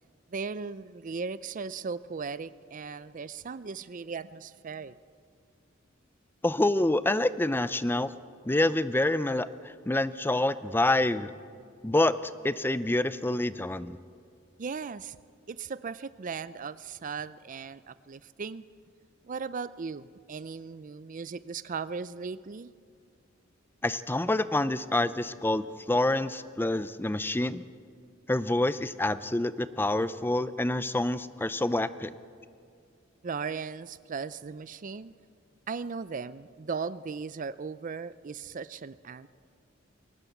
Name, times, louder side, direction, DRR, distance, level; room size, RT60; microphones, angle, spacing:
voice 1, 0.3-5.0 14.6-15.2 15.5-18.6 19.2-22.7 33.2-35.1 35.7-39.3, right 5 dB, 40° right, 16 dB, 0.5 m, -37 dB
voice 2, 6.4-8.1 8.5-11.3 11.8-14.0 23.8-27.6 28.3-32.1, left 1 dB, 10° left, 14 dB, 0.5 m, -27 dB
22.0 x 18.5 x 8.2 m, 2.2 s
head